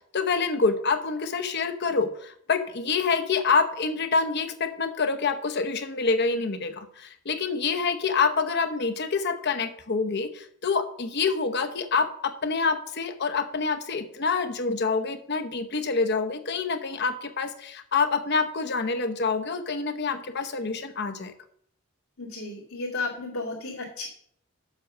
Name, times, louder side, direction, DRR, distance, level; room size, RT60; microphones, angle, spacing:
voice 1, 0.0-21.3, left 4 dB, 50° left, 9 dB, 0.8 m, -27 dB
voice 2, 22.2-24.1, left 3 dB, 80° left, -7 dB, 2.4 m, -33 dB
7.6 x 6.2 x 6.2 m, 0.66 s
head